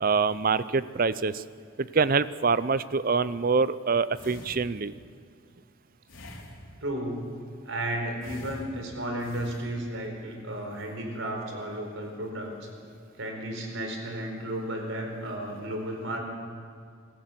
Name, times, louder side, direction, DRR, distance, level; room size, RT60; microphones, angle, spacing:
voice 1, 0.0-1.4 1.8-4.9, right 4 dB, 45° right, 16 dB, 0.6 m, -25 dB
sound 1, 4.1-5.1 6.1-7.0 8.2-10.1 10.7-11.0, left 1 dB, 75° left, 3.5 m, -46 dB
voice 2, 6.8-7.3 7.6-12.7 13.2-16.2, right 1 dB, 70° right, 2 dB, 4.4 m, -33 dB
25.0 x 15.0 x 7.7 m, 2.2 s
head